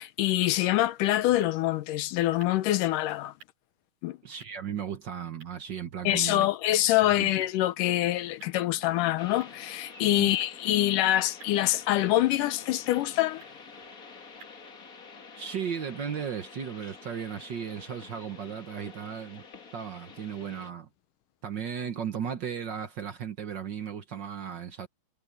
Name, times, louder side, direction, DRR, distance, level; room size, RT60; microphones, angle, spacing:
voice 1, 0.0-3.3 4.0-4.2 6.1-13.4, left 14 dB, 85° left, 2.4 m, -25 dB
sound 1, 0.6-14.6, right 5 dB, 80° right, 7.6 m, -60 dB
voice 2, 4.2-6.5 7.0-7.3 10.2-10.4 15.4-19.4 19.7-20.9 21.4-24.9, right 8 dB, 60° right, 1.1 m, -36 dB
sound 2, 9.2-20.7, left 5 dB, 35° left, 1.7 m, -48 dB
omnidirectional pair, 3.7 m